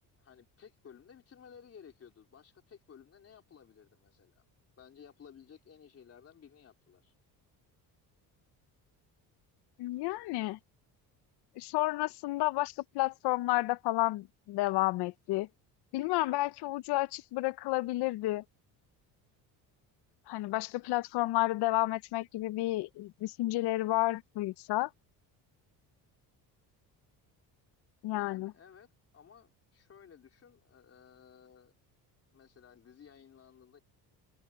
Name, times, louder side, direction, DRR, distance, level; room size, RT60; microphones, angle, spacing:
voice 1, 0.2-4.4 4.8-7.1 28.1-28.9 29.1-31.7 32.3-33.8, left 7 dB, 40° left, 3.7 m, -56 dB
voice 2, 9.8-10.6 11.6-15.5 15.9-18.4 20.3-24.9 28.0-28.5, left 18 dB, 85° left, 0.8 m, -31 dB
cardioid pair, 140°, 39 cm